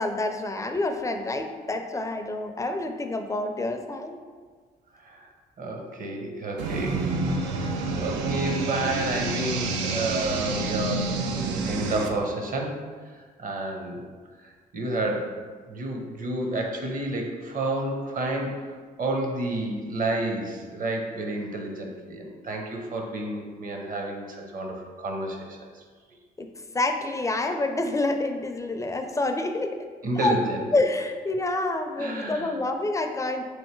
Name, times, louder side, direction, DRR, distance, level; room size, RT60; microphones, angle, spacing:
voice 1, 0.0-4.2 26.4-26.5 26.7-29.8 30.2-30.3 30.7-33.4, left 2 dB, 15° left, 5 dB, 0.4 m, -27 dB
voice 2, 4.9-5.2 5.6-12.7 13.0-13.1 13.4-14.1 14.7-15.3 15.7-18.5 19.0-25.8 30.0-30.6 31.9-32.5, right 2 dB, 50° right, 1 dB, 0.8 m, -30 dB
sound 1, 6.6-12.1, right 3 dB, 90° right, 0.4 m, -28 dB
3.2 x 2.6 x 4.5 m, 1.5 s
supercardioid pair, 65°, 19 cm